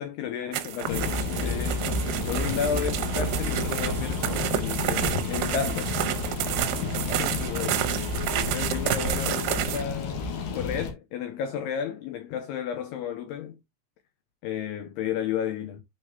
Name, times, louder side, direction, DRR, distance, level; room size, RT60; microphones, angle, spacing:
voice 1, 0.0-2.0 2.3-6.0 7.1-10.3 10.5-13.6 14.4-15.8, left 8 dB, 90° left, 2.3 m, -33 dB
sound 1, 0.5-9.8, right 13 dB, 80° right, 3.1 m, -30 dB
sound 2, 0.9-10.9, left 3 dB, 60° left, 2.7 m, -30 dB
11.5 x 4.8 x 2.7 m
omnidirectional pair, 5.8 m